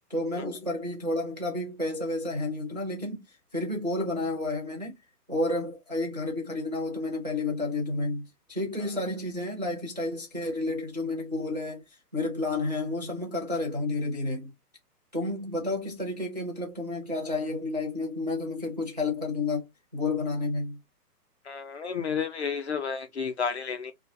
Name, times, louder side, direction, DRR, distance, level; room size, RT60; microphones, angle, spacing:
voice 1, 0.1-3.2 3.5-5.0 5.3-14.5 15.1-19.7 19.9-20.8, left 2 dB, 30° right, 0.4 m, -31 dB
voice 2, 21.5-23.9, left 6 dB, 45° left, 0.5 m, -31 dB
2.2 x 2.2 x 2.5 m
hypercardioid pair, 150°, 48 cm